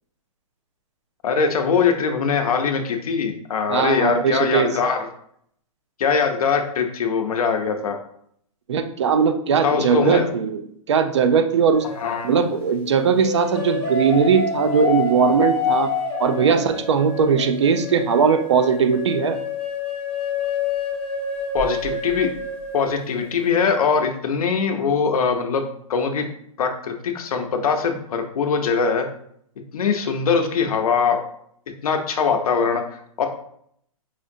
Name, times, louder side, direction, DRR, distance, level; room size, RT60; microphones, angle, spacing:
voice 1, 1.2-5.1 6.0-8.0 9.6-10.3 12.0-12.4 21.5-22.3 22.7-25.6 25.9-26.3 26.6-29.1 29.7-31.2 31.8-32.8 33.2-33.3, left 5 dB, 75° left, 5 dB, 0.7 m, -22 dB
voice 2, 3.7-4.7 8.7-10.6 10.9-11.9 12.2-15.9 16.2-19.4, right 6 dB, 50° right, 9 dB, 0.4 m, -19 dB
sound 1, 11.7-12.4 13.2-23.2, left 4 dB, 5° left, 0.5 m, -27 dB
4.9 x 2.5 x 2.6 m, 0.68 s
hypercardioid pair, 170°, 19 cm